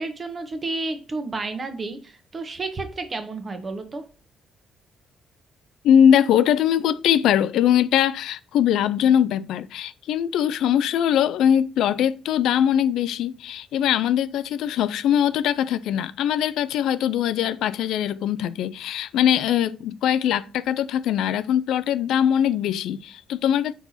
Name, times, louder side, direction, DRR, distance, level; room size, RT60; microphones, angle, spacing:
voice 1, 0.0-4.0, right 3 dB, 35° right, 1.1 m, -31 dB
voice 2, 5.8-23.7, left 9 dB, 85° left, 0.3 m, -21 dB
4.5 x 4.1 x 5.6 m
cardioid pair, 90°, 0 cm